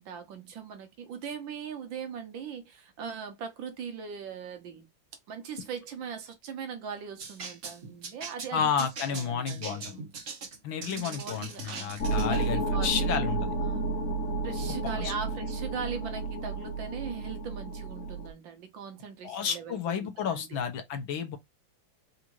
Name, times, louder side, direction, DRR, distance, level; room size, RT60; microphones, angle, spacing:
voice 1, 0.0-4.9 5.3-10.1 10.9-11.9 12.2-13.2 13.6-13.9 14.4-20.6, right 6 dB, 70° right, 1.7 m, -40 dB
sound 1, 7.2-12.5, right 4 dB, 45° right, 1.2 m, -41 dB
voice 2, 8.5-10.0 10.6-13.5 14.8-15.1 19.2-21.4, left 7 dB, 75° left, 1.8 m, -31 dB
sound 2, 12.0-18.3, right 2 dB, 55° left, 1.0 m, -31 dB
4.9 x 2.7 x 3.0 m
omnidirectional pair, 2.2 m